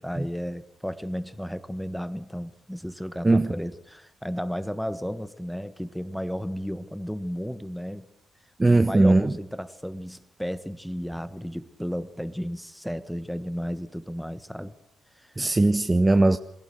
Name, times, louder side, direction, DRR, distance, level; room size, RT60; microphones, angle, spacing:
voice 1, 0.0-8.0 8.6-14.7 15.2-15.3, equal, ahead, 1.4 m, -33 dB
voice 2, 8.6-9.3 15.4-16.4, right 2 dB, 20° right, 0.7 m, -19 dB
24.5 x 16.5 x 6.6 m
figure-of-eight pair, 40°, 0 cm